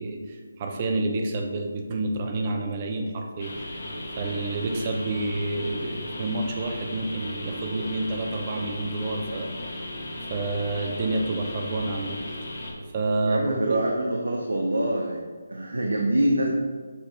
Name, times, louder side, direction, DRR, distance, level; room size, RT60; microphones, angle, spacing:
voice 1, 0.0-3.5 4.2-9.5 10.3-12.2 12.9-13.8, right 2 dB, 30° right, 2 dB, 0.8 m, -29 dB
sound 1, 3.4-12.7, left 1 dB, 60° left, 1.5 m, -36 dB
voice 2, 13.2-15.2 15.5-16.5, right 1 dB, 90° right, 0 dB, 0.9 m, -25 dB
7.4 x 2.9 x 4.7 m, 1.5 s
figure-of-eight pair, 160°, 0 cm